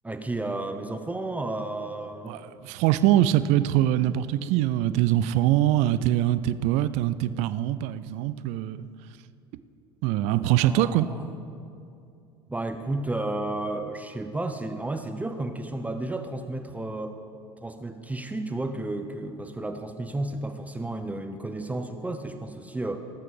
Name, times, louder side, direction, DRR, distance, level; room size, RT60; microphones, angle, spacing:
voice 1, 0.0-2.4 10.3-11.3 12.5-17.2 17.6-23.0, right 2 dB, 10° right, 6 dB, 0.8 m, -32 dB
voice 2, 2.2-8.9 10.0-11.1, right 13 dB, 55° right, 14 dB, 0.5 m, -23 dB
18.5 x 7.6 x 5.0 m, 2.5 s
hypercardioid pair, 70°, 14 cm